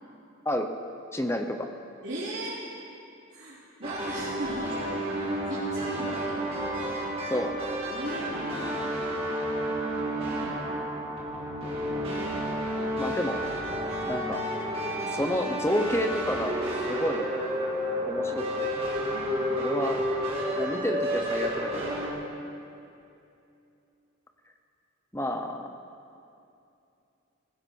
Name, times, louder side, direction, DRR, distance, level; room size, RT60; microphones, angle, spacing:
voice 1, 1.1-1.7 7.3-7.5 13.0-13.4 14.1-14.4 15.1-16.6 16.9-17.3 18.1-18.7 19.6-20.0 20.5-22.0 25.1-25.7, equal, 10° left, 5 dB, 0.9 m, -29 dB
voice 2, 2.0-2.6 3.3-6.4 7.9-8.6 10.2-10.7 19.1-19.4 22.4-22.6, right 1 dB, 55° right, -10 dB, 3.3 m, -38 dB
sound 1, 3.8-22.1, equal, 25° right, 2.8 m, -31 dB
19.5 x 16.0 x 4.6 m, 2.6 s
head